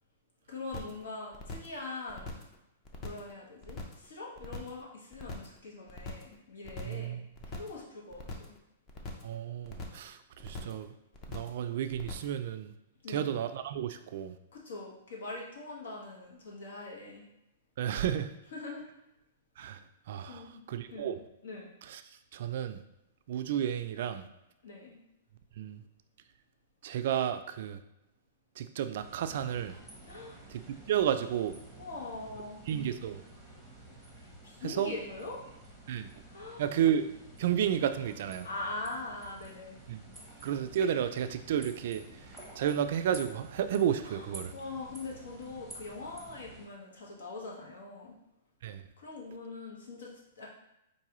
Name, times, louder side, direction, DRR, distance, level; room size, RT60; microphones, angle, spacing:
voice 1, 0.5-2.4 3.0-7.2 7.4-8.5 13.0-13.3 14.5-17.2 18.5-18.8 20.3-20.7 20.9-21.1 21.4-21.7 24.6-25.0 30.0-30.4 31.8-32.6 34.2-35.4 36.3-36.7 38.4-39.8 44.0-48.1 49.0-50.5, left 3 dB, 85° left, -2 dB, 1.3 m, -42 dB
sound 1, 0.7-1.0 1.3-1.8 2.1-2.5 2.8-3.3 3.6-4.1 4.4-4.8 5.1-5.6 5.9-6.3 6.6-7.1 7.4-7.8 8.1-8.6 8.9-9.3 9.6-10.1 10.4-10.8 11.1-11.6 11.9-12.4, left 3 dB, 30° left, 0.6 m, -42 dB
voice 2, 6.8-7.2 9.2-10.9 11.3-12.7 13.1-14.4 17.8-18.4 19.6-19.8 20.1-20.4 20.7-21.2 21.9-22.0 22.3-22.8 23.3-24.3 25.6-25.8 26.8-27.8 28.6-29.7 30.5-30.6 30.9-31.6 32.7-33.2 34.6-34.9 35.9-36.1 36.6-38.5 39.9-40.0 40.4-42.0 42.6-44.5 48.6-48.9, right 9 dB, 60° right, 9 dB, 0.3 m, -32 dB
sound 2, 29.0-46.7, right 1 dB, 5° left, 0.9 m, -51 dB
4.7 x 2.6 x 3.0 m, 0.88 s
hypercardioid pair, 145°, 0 cm